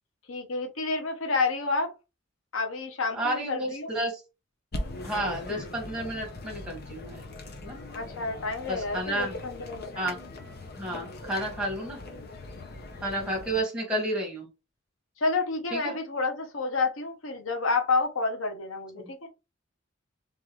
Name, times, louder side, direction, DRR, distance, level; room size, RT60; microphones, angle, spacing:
voice 1, 0.3-1.9 2.5-3.9 7.9-10.1 13.1-13.4 15.2-19.3, left 3 dB, 90° left, 1.0 m, -29 dB
voice 2, 3.1-4.1 5.0-7.2 7.6-7.8 8.7-9.3 10.0-10.2 10.7-12.0 13.0-14.5 15.7-15.9, right 1 dB, 5° right, 1.8 m, -31 dB
sound 1, 4.7-13.6, left 2 dB, 50° left, 0.9 m, -40 dB
3.8 x 3.5 x 3.2 m
head